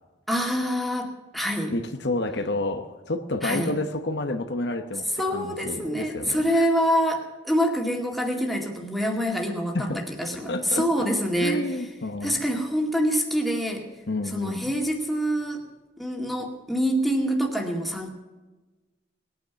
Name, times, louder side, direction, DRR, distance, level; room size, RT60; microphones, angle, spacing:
voice 1, 0.3-1.7 3.4-3.7 5.2-11.6 12.2-13.8 14.3-15.6 16.0-18.1, equal, ahead, 0 dB, 2.2 m, -26 dB
voice 2, 1.7-6.7 9.7-11.1 11.4-12.4 14.1-14.7, left 2 dB, 60° left, 7 dB, 1.0 m, -30 dB
20.0 x 9.5 x 7.0 m, 1.2 s
head